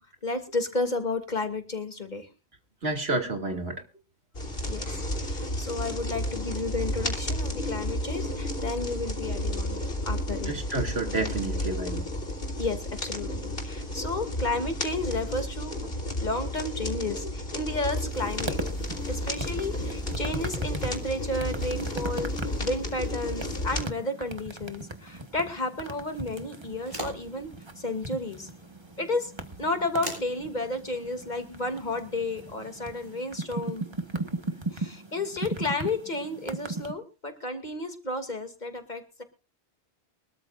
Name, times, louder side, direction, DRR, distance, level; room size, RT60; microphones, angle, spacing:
voice 1, 0.2-2.3 4.6-4.9 5.2-10.5 12.6-15.8 16.2-18.6 19.1-22.3 22.6-27.5 27.8-28.5 29.0-29.3 29.6-33.9 34.7-39.2, left 2 dB, 45° left, 2.6 m, -32 dB
voice 2, 2.8-3.8 10.5-12.1, right 2 dB, 80° right, 2.8 m, -29 dB
sound 1, 4.3-23.9, left 1 dB, 70° left, 3.6 m, -32 dB
sound 2, 18.1-36.9, right 2 dB, 25° right, 1.5 m, -38 dB
sound 3, 26.7-33.1, right 1 dB, 65° right, 6.9 m, -45 dB
24.0 x 13.5 x 2.5 m
omnidirectional pair, 1.0 m